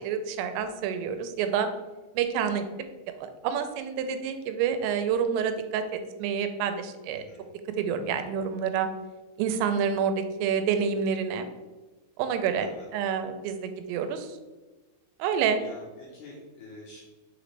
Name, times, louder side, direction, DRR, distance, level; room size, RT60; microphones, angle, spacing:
voice 1, 0.0-1.7 2.1-2.7 3.2-7.2 7.8-8.9 9.4-11.5 12.2-14.4 15.2-15.6, right 7 dB, 85° right, 8 dB, 3.2 m, -28 dB
voice 2, 7.1-7.4 12.6-12.8 15.6-17.0, left 2 dB, 75° left, -4 dB, 2.4 m, -47 dB
6.7 x 5.0 x 3.2 m, 1.2 s
omnidirectional pair, 5.7 m